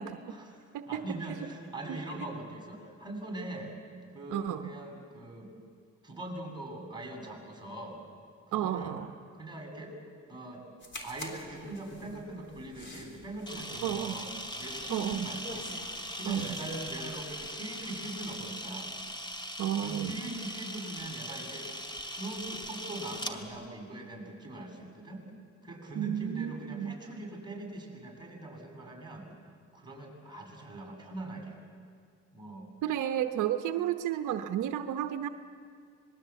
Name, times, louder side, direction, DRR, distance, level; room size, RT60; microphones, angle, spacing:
voice 1, 0.1-3.7 4.1-5.5 6.0-8.0 8.5-9.0 9.3-10.0 10.3-10.6 11.0-14.3 14.6-15.7 16.1-18.9 19.8-21.8 22.1-25.2 25.6-29.3 29.7-31.6 32.3-32.7, right 1 dB, 15° right, 0 dB, 7.4 m, -42 dB
voice 2, 4.3-4.7 8.5-9.1 13.8-14.1 14.9-15.3 16.2-16.5 19.6-20.1 25.9-26.9 32.8-35.3, right 11 dB, 85° right, 7 dB, 1.0 m, -32 dB
sound 1, 10.8-17.5, left 1 dB, 40° left, 3.7 m, -46 dB
Camera, 13.5-23.4, equal, 15° left, 2.3 m, -40 dB
26.0 x 20.5 x 8.3 m, 2.2 s
cardioid pair, 90°, 30 cm